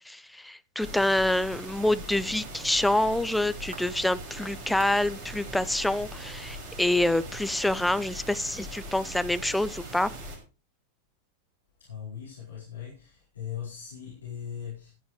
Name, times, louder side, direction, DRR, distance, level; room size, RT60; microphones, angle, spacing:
voice 1, 0.1-10.1, left 1 dB, 5° left, 0.6 m, -27 dB
sound 1, 0.8-10.4, right 1 dB, 35° right, 5.9 m, -41 dB
sound 2, 1.0-9.2, right 4 dB, 65° right, 2.6 m, -56 dB
voice 2, 11.8-14.9, left 9 dB, 70° left, 4.7 m, -39 dB
15.5 x 11.0 x 3.2 m
figure-of-eight pair, 90°, 0 cm